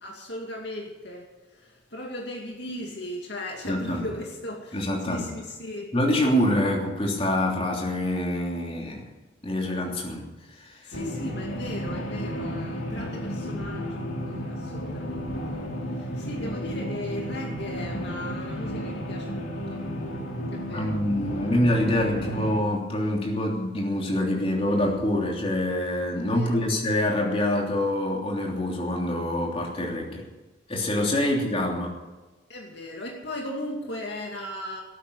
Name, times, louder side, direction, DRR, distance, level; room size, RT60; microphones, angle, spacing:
voice 1, 0.0-5.9 10.9-15.7 16.0-19.8 20.5-21.0 26.3-26.7 31.3-31.4 32.5-34.8, left 1 dB, 55° left, 0 dB, 2.4 m, -37 dB
voice 2, 3.7-4.1 4.7-5.3 5.9-9.0 9.4-10.3 10.6-11.0 20.7-30.2 30.7-31.9, left 1 dB, 30° left, -1 dB, 3.2 m, -26 dB
sound 1, 10.9-22.6, equal, 80° left, 2.8 m, -33 dB
18.0 x 9.0 x 8.4 m, 1.2 s
head